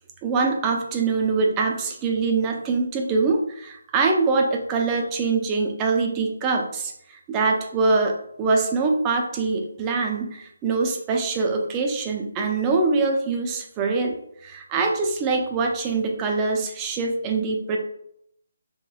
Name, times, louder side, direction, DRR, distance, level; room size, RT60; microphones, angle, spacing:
voice 1, 0.2-14.2 14.4-17.8, right 4 dB, 20° right, 2 dB, 0.4 m, -24 dB
2.9 x 2.9 x 2.3 m, 0.74 s
figure-of-eight pair, 150°, 0 cm